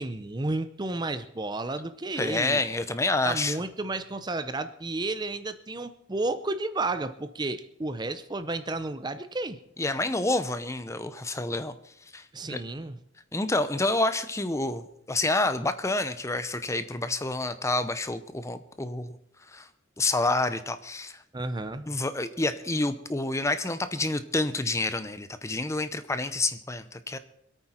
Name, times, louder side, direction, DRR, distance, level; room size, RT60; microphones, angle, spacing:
voice 1, 0.0-2.6 3.2-9.6 12.3-13.0 21.3-21.9, right 2 dB, 20° right, 11 dB, 0.6 m, -32 dB
voice 2, 2.2-3.6 9.8-11.7 12.1-12.6 13.3-19.2 19.5-19.7 20.0-21.2 21.9-27.2, left 2 dB, 15° left, 12 dB, 0.7 m, -28 dB
24.5 x 9.0 x 4.4 m, 0.72 s
head